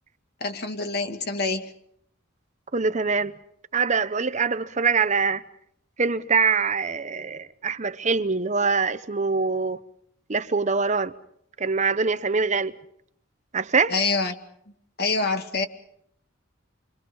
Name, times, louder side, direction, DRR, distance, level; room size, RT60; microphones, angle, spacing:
voice 1, 0.4-1.7 13.9-14.3 15.0-15.7, left 3 dB, 50° left, 2.4 m, -26 dB
voice 2, 2.7-3.4 3.7-5.4 6.0-9.8 10.3-11.1 11.6-12.7 13.5-13.9, right 4 dB, 35° right, 0.9 m, -24 dB
29.0 x 25.0 x 5.6 m
head